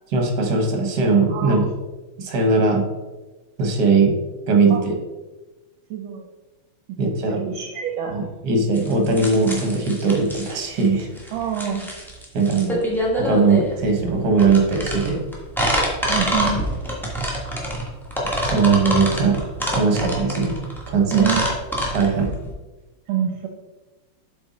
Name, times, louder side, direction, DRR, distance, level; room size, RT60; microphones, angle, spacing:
voice 1, 0.1-1.7 2.2-2.8 3.6-4.1 4.5-4.9 7.0-7.4 8.1-11.1 12.3-12.6 13.2-15.2 18.4-19.4 19.7-20.5 20.9-21.3 21.9-22.3, right 4 dB, 55° right, 3 dB, 1.6 m, -19 dB
voice 2, 1.3-1.7 4.7-4.8 5.9-6.3 7.3-8.3 11.3-11.9 12.5-12.8 16.1-17.1 21.1-21.4 23.1-23.5, right 9 dB, 75° right, 3 dB, 1.4 m, -26 dB
sound 1, 8.7-22.5, equal, ahead, 1.0 m, -26 dB
7.7 x 4.6 x 4.0 m, 1.2 s
omnidirectional pair, 2.3 m